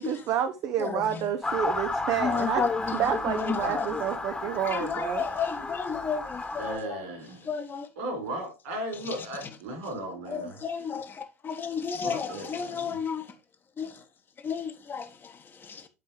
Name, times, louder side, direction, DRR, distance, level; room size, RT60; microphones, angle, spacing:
voice 1, 0.0-2.6 2.9-5.2, right 9 dB, 45° right, 0.8 m, -29 dB
voice 2, 0.8-1.3 2.2-4.0 4.6-7.0 7.4-7.9 9.1-9.3 10.3-13.3 13.8-14.0 14.4-15.9, left 6 dB, 30° left, 1.2 m, -32 dB
Motor vehicle (road) / Siren, 1.4-6.8, left 2 dB, 10° left, 1.4 m, -33 dB
voice 3, 6.6-7.5 8.0-10.6 12.0-13.0, right 1 dB, 65° right, 4.4 m, -36 dB
11.0 x 4.6 x 3.1 m
figure-of-eight pair, 75°, 8 cm